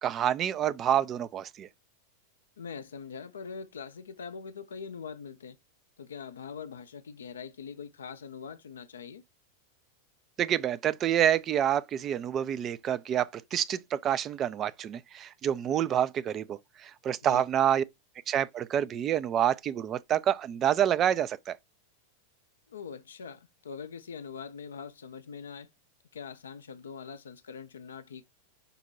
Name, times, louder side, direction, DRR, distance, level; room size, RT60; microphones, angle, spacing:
voice 1, 0.0-1.7 10.4-17.8 18.3-21.6, right 10 dB, 30° right, 0.3 m, -28 dB
voice 2, 2.6-5.6 6.0-9.2 17.2-17.4 22.7-25.7 26.1-28.2, left 6 dB, 65° left, 0.4 m, -43 dB
5.3 x 2.2 x 4.3 m
figure-of-eight pair, 90°, 0 cm